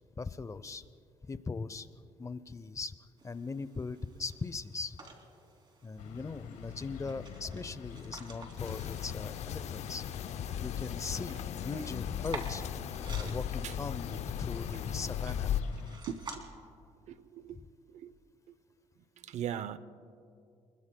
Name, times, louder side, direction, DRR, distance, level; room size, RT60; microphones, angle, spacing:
voice 1, 0.2-0.9 1.2-1.9 2.2-3.0 3.2-5.0 5.8-10.1 10.6-12.7 13.1-15.5 17.5-17.7, left 4 dB, 25° left, 14 dB, 0.7 m, -40 dB
sound 1, 3.2-16.4, right 3 dB, 40° right, 2.8 m, -51 dB
sound 2, 6.0-16.0, left 7 dB, 90° left, 1.6 m, -45 dB
sound 3, 8.6-15.6, left 10 dB, 65° left, 0.6 m, -37 dB
voice 2, 16.1-16.4 17.1-17.6 17.9-18.1 19.2-19.8, right 9 dB, 70° right, 14 dB, 0.7 m, -39 dB
29.0 x 21.5 x 2.3 m, 2.5 s
cardioid pair, 90°, 12 cm